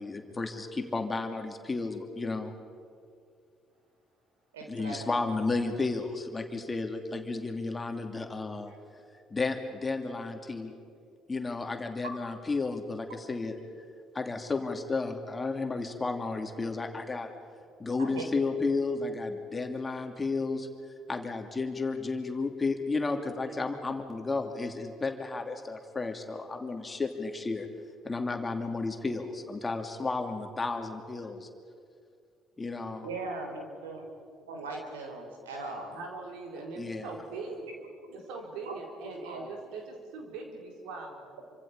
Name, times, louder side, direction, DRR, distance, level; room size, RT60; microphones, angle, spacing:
voice 1, 0.0-2.5 4.7-8.7 9.3-10.7 11.3-13.6 14.1-17.3 17.8-20.7 21.1-27.7 28.0-31.5 32.6-33.1 36.8-37.1, left 3 dB, 25° left, 4 dB, 2.8 m, -32 dB
voice 2, 4.5-5.0 18.0-18.3 33.0-34.1 34.5-35.9 38.6-38.7 39.0-39.5, right 3 dB, 85° right, 2 dB, 3.4 m, -39 dB
voice 3, 35.9-37.7 38.1-41.3, right 3 dB, 70° right, 1 dB, 4.1 m, -41 dB
27.5 x 25.5 x 5.0 m, 2.3 s
hypercardioid pair, 55°, 0 cm